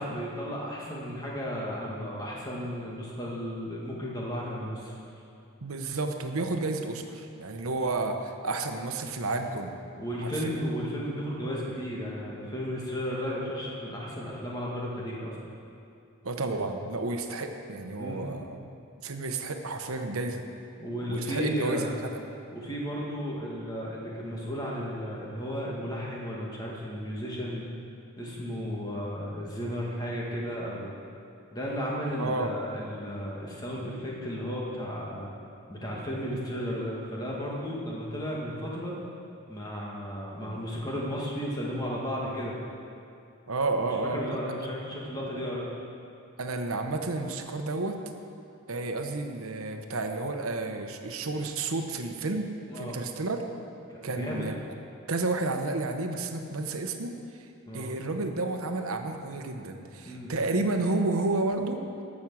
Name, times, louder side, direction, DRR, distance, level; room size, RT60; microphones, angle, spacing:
voice 1, 0.0-4.9 9.9-15.4 18.0-18.3 20.8-21.9 22.5-27.6 28.2-30.9 31.5-35.3 35.7-38.9 39.5-42.5 43.8-45.7 52.7-53.0 53.9-54.5 57.7-57.9 60.0-60.3, equal, 20° left, -4 dB, 1.9 m, -34 dB
voice 2, 5.6-9.8 10.2-10.6 16.2-18.6 19.0-20.4 21.1-22.2 32.2-32.5 43.5-44.6 46.4-48.0 48.7-52.5 52.7-53.5 54.0-54.6 55.1-57.1 57.4-57.5 57.7-61.8, right 2 dB, 85° right, 5 dB, 0.9 m, -31 dB
14.5 x 6.3 x 6.2 m, 2.6 s
head